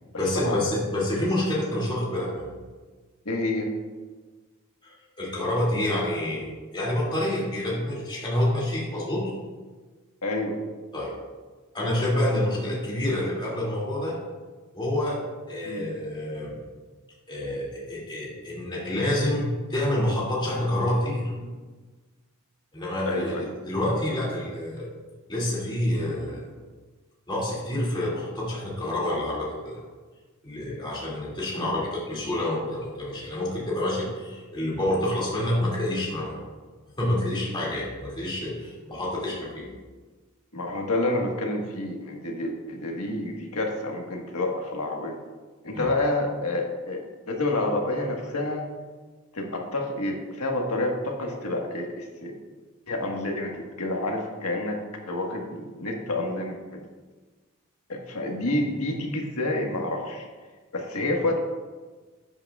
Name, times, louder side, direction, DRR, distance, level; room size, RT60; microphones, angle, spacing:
voice 1, 0.2-2.5 4.8-9.3 10.9-11.1 11.7-14.1 14.7-15.2 15.5-16.6 17.3-21.5 22.7-24.9 25.3-26.5 27.3-29.8 30.4-36.4 37.0-39.7 45.7-45.9, left 1 dB, 20° left, -5 dB, 2.5 m, -28 dB
voice 2, 3.2-3.7 10.2-10.6 15.6-15.9 23.0-23.5 31.5-31.8 40.5-45.2 45.6-48.6 49.3-52.4 52.9-54.8 55.1-56.8 57.9-60.3 60.7-61.4, left 2 dB, 80° left, 1 dB, 1.5 m, -29 dB
12.5 x 8.8 x 2.4 m, 1.3 s
head